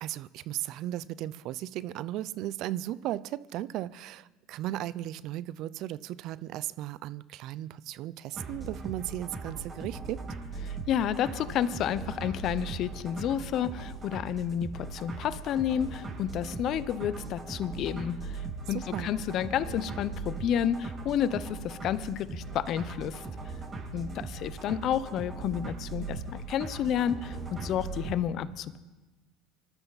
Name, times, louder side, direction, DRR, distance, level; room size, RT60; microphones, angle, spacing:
voice 1, 0.0-10.2 18.7-19.1, right 14 dB, 60° right, 18 dB, 0.6 m, -36 dB
sound 1, 8.3-28.2, right 3 dB, 30° right, 6.1 m, -39 dB
voice 2, 10.6-23.2 23.9-28.8, left 9 dB, 55° left, 14 dB, 0.9 m, -31 dB
25.5 x 12.5 x 4.2 m, 1.2 s
hypercardioid pair, 80°, 0 cm